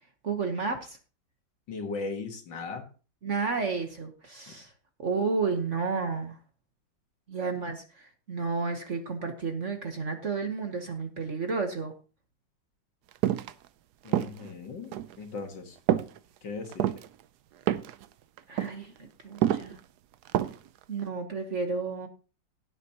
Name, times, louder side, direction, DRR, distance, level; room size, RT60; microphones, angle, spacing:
voice 1, 0.2-1.0 3.2-4.7 5.0-6.4 7.3-11.9 18.5-19.8 20.9-22.1, right 4 dB, 45° right, 5 dB, 1.3 m, -31 dB
voice 2, 1.7-2.9 14.0-15.8 16.4-16.9, left 4 dB, 65° left, 4 dB, 2.4 m, -37 dB
sound 1, 13.2-13.5 14.1-14.5 14.9-15.1 15.9-16.2 16.6-17.1 17.7-18.0 18.4-18.7 19.4-19.7 20.3-20.7 21.0-21.1, right 12 dB, 70° right, 1.0 m, -27 dB
17.0 x 8.2 x 2.9 m, 0.36 s
omnidirectional pair, 2.1 m